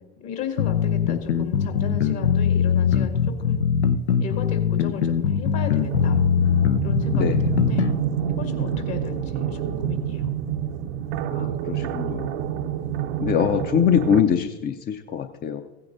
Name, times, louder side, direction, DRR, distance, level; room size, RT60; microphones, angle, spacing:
voice 1, 0.2-3.6 4.2-6.2 6.8-7.8 8.3-10.3, left 7 dB, 55° left, 4 dB, 2.0 m, -35 dB
sound 1, 0.6-8.0, left 8 dB, 85° left, 0.6 m, -21 dB
sound 2, 5.8-14.2, right 9 dB, 70° right, 0.6 m, -28 dB
voice 2, 11.3-12.4 13.2-15.6, left 8 dB, 30° left, 7 dB, 0.6 m, -23 dB
16.5 x 9.6 x 2.6 m, 1.2 s
hypercardioid pair, 75°, 33 cm